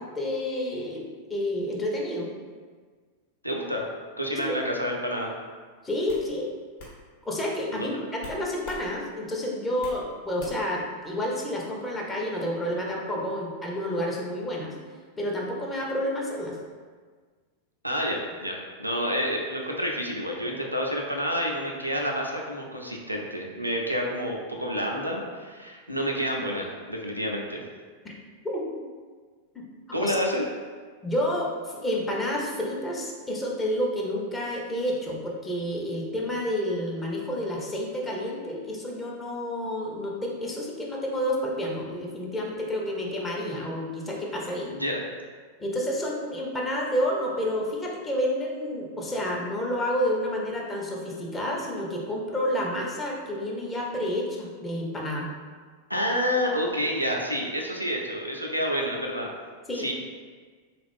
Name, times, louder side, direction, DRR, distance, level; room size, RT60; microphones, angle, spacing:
voice 1, 0.0-2.3 4.4-4.6 5.8-6.5 7.2-14.7 15.2-16.6 28.0-28.1 28.4-28.7 29.5-29.7 30.0-30.2 31.0-44.7 45.6-55.3 59.7-59.9, equal, 15° left, -2 dB, 0.7 m, -29 dB
voice 2, 3.4-3.9 4.2-5.3 7.7-7.9 17.8-27.6 29.9-30.4 44.7-45.0 55.9-59.3 59.7-59.9, equal, 90° right, -1 dB, 0.4 m, -29 dB
sound 1, 5.3-5.5 6.1-6.3 6.8-7.0 8.2-8.8 9.2-10.0 10.4-10.7, left 2 dB, 50° left, 1.1 m, -43 dB
3.5 x 2.4 x 3.5 m, 1.5 s
figure-of-eight pair, 90°, 0 cm